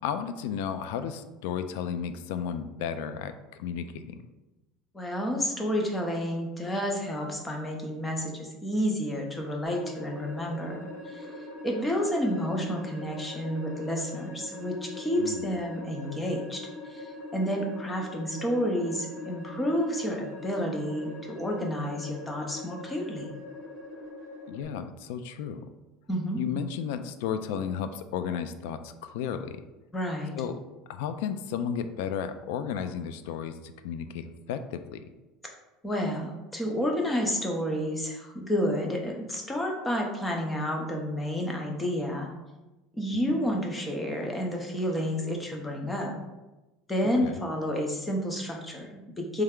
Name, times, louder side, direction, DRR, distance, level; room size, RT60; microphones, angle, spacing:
voice 1, 0.0-4.2 15.2-15.5 24.5-25.6 26.4-29.6 30.4-30.6 30.9-35.0 43.3-43.4 47.0-47.4, left 8 dB, 80° left, 10 dB, 0.3 m, -33 dB
voice 2, 4.9-10.8 11.1-11.3 11.6-23.3 26.1-26.4 29.9-30.3 35.8-42.3 42.9-46.1 46.9-49.4, equal, 10° left, 1 dB, 0.6 m, -30 dB
sound 1, 9.6-24.6, left 2 dB, 30° left, 1.3 m, -42 dB
3.3 x 3.2 x 3.6 m, 1.1 s
cardioid pair, 170°, 0 cm